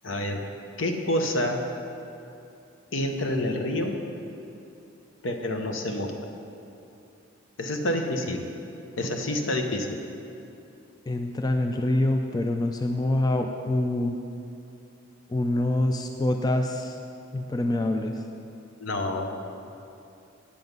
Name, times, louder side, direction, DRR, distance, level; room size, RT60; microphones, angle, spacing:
voice 1, 0.0-0.4 0.8-1.7 2.9-4.0 5.2-6.1 7.6-8.4 9.0-10.0 18.8-19.4, left 1 dB, 70° left, 4 dB, 0.9 m, -28 dB
voice 2, 11.1-14.2 15.3-17.0 17.3-18.2, left 1 dB, 20° left, 4 dB, 0.3 m, -25 dB
8.6 x 7.9 x 5.3 m, 2.7 s
head